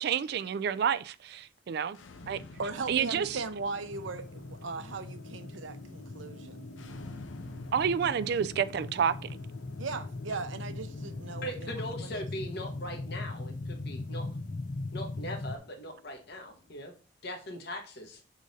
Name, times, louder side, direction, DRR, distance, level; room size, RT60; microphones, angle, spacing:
voice 1, 0.0-2.0 2.3-2.4 2.9-3.3 7.7-9.4, right 7 dB, 55° right, 0.3 m, -29 dB
sound 1, 1.9-16.8, left 2 dB, 90° left, 0.7 m, -50 dB
voice 2, 2.6-6.7 9.8-12.2, right 4 dB, 85° right, 0.7 m, -38 dB
sound 2, 3.9-15.6, left 2 dB, 40° left, 0.5 m, -40 dB
voice 3, 11.4-14.3 14.9-16.9 17.2-18.2, equal, 55° left, 1.1 m, -40 dB
6.3 x 3.8 x 4.0 m
head